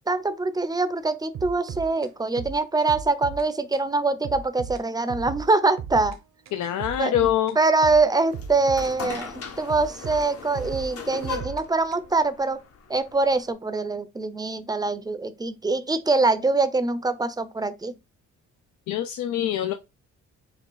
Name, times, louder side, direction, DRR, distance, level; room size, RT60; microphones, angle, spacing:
voice 1, 0.1-6.2 7.0-7.1 7.6-12.6 12.9-17.9, right 3 dB, 15° right, 0.5 m, -24 dB
sound 1, 1.3-3.5 3.7-3.9 4.2-6.2 6.5-9.3 9.7-12.2, right 6 dB, 60° right, 0.8 m, -37 dB
voice 2, 6.5-7.6 18.9-19.7, left 11 dB, 70° left, 0.5 m, -24 dB
sound 2, 8.2-13.5, left 5 dB, 50° left, 0.9 m, -38 dB
4.6 x 2.4 x 3.9 m
cardioid pair, 90°, 30 cm